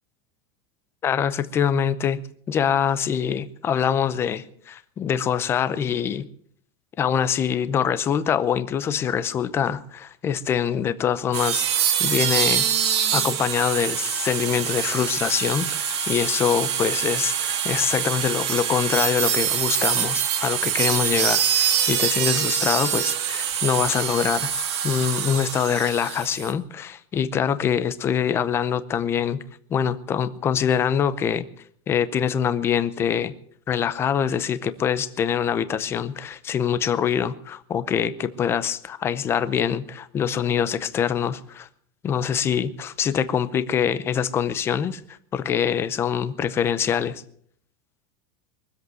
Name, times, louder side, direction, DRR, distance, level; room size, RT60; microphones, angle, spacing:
voice 1, 1.0-2.2 2.5-6.3 7.0-12.6 13.1-24.5 24.8-29.4 29.7-31.4 31.9-33.3 33.7-41.7 42.0-47.2, left 8 dB, 15° left, 0.7 m, -24 dB
sound 1, 11.3-26.5, right 9 dB, 90° right, 2.4 m, -25 dB
22.5 x 8.0 x 7.8 m
supercardioid pair, 175°, 14 cm